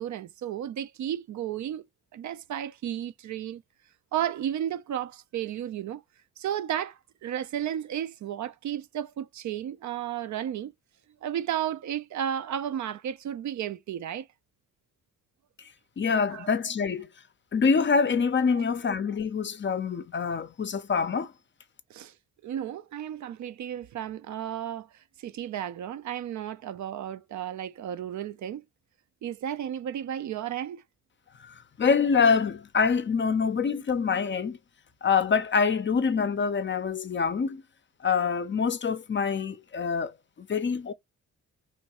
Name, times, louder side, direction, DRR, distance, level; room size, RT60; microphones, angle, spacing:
voice 1, 0.0-1.8 2.1-3.6 4.1-6.0 6.4-10.7 11.2-14.3 16.3-16.5 21.9-22.1 22.4-28.6 29.2-30.8, right 10 dB, 55° right, 0.4 m, -33 dB
voice 2, 16.0-17.1 17.5-21.3 31.4-34.6 35.0-37.6 38.0-40.9, left 5 dB, 35° left, 0.5 m, -25 dB
3.2 x 2.2 x 2.8 m
hypercardioid pair, 45°, 36 cm